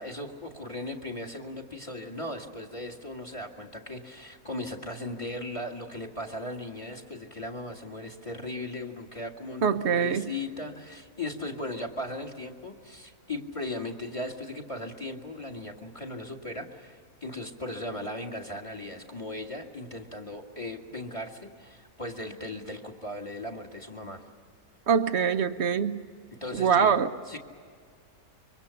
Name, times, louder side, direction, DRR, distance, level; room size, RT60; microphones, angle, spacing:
voice 1, 0.0-24.2 26.4-27.4, left 1 dB, 20° left, 3 dB, 1.8 m, -37 dB
voice 2, 9.6-10.3 24.9-26.1 26.5-27.1, right 6 dB, 50° right, 10 dB, 1.1 m, -24 dB
26.0 x 23.5 x 7.0 m, 2.1 s
omnidirectional pair, 1.6 m